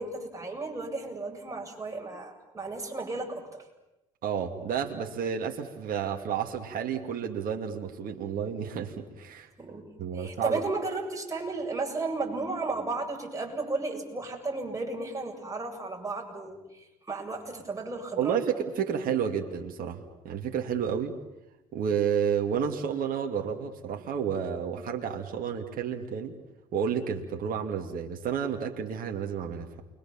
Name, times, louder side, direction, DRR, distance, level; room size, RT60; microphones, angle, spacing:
voice 1, 0.0-3.7 9.6-18.4, right 3 dB, 20° right, 1 dB, 7.7 m, -34 dB
voice 2, 4.2-9.5 10.0-10.6 18.2-21.1 21.7-26.4 26.7-29.7, right 7 dB, 60° right, 3 dB, 2.6 m, -31 dB
29.5 x 23.0 x 7.4 m, 0.96 s
hypercardioid pair, 65°, 16 cm